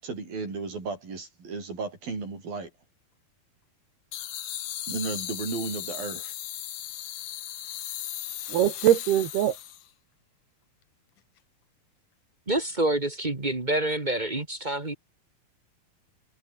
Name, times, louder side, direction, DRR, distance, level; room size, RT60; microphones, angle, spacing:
voice 1, 0.0-2.7 4.9-6.3, right 4 dB, 65° right, 9.1 m, -34 dB
sound 1, 4.1-9.9, left 12 dB, 60° left, 2.6 m, -36 dB
voice 2, 8.5-9.6, right 11 dB, 90° right, 3.9 m, -22 dB
voice 3, 12.5-14.9, right 1 dB, 30° right, 0.8 m, -27 dB
omnidirectional pair, 4.5 m